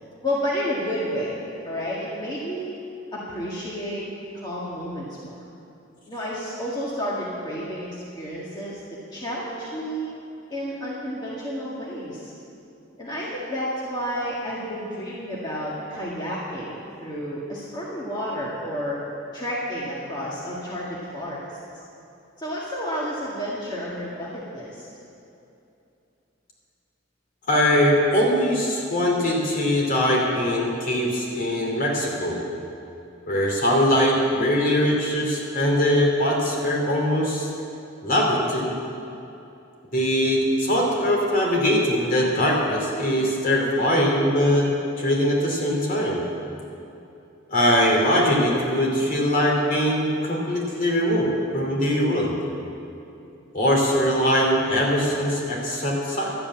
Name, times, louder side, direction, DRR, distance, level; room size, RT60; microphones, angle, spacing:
voice 1, 0.2-1.3 1.6-2.7 3.1-4.1 4.3-5.4 6.1-8.8 9.1-10.1 10.5-12.3 13.0-19.0 19.3-21.5 22.4-24.9, equal, 20° left, -6 dB, 1.9 m, -31 dB
voice 2, 27.5-32.4 33.3-37.5 38.0-38.7 39.9-44.7 45.0-46.2 47.5-52.4 53.5-56.3, equal, 45° left, -2 dB, 2.8 m, -21 dB
12.0 x 8.7 x 8.6 m, 2.8 s
head